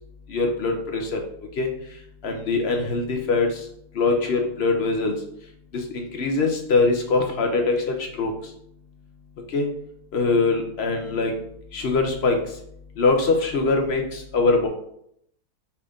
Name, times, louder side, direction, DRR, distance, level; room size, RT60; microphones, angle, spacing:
voice 1, 0.3-1.2 1.6-1.7 2.2-3.6 4.0-5.1 5.7-8.3 9.5-9.7 10.1-11.3 11.7-12.4 13.0-14.7, left 3 dB, 65° left, 2 dB, 0.6 m, -22 dB
5.6 x 2.5 x 3.5 m, 0.72 s
omnidirectional pair, 1.7 m